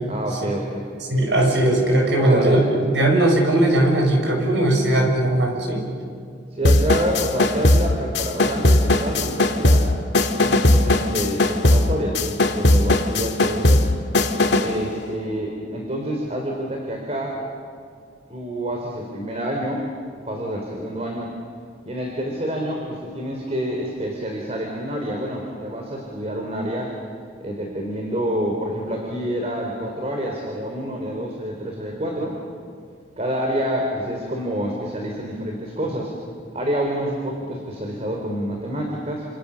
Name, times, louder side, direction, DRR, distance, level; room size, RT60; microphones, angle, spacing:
voice 1, 0.1-0.9 2.2-2.6 6.5-9.9 10.4-13.8 14.6-17.4 18.3-19.8 20.3-21.3 21.9-26.9 27.4-32.4 33.2-36.1 36.5-39.2, equal, 35° right, 0 dB, 3.5 m, -27 dB
voice 2, 1.1-2.6 2.9-5.8, right 1 dB, 85° right, 1 dB, 6.6 m, -18 dB
sound 1, 6.6-14.8, left 1 dB, 80° left, 1.7 m, -18 dB
28.5 x 26.5 x 7.0 m, 2.3 s
head